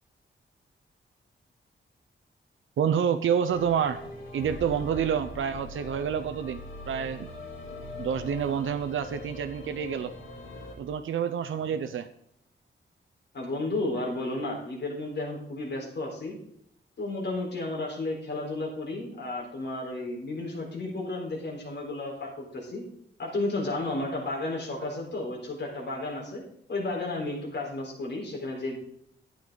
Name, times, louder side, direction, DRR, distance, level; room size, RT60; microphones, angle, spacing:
voice 1, 2.8-4.0 4.3-6.6 6.9-7.3 8.0-10.1 10.8-12.1, right 8 dB, 90° right, 9 dB, 0.6 m, -28 dB
sound 1, 3.5-10.7, left 2 dB, 80° left, 3.1 m, -42 dB
voice 2, 13.3-16.4 17.0-22.8 23.2-26.4 26.7-28.8, left 2 dB, 60° left, -1 dB, 4.2 m, -33 dB
12.0 x 9.1 x 3.9 m, 0.74 s
wide cardioid pair, 140°, 20 cm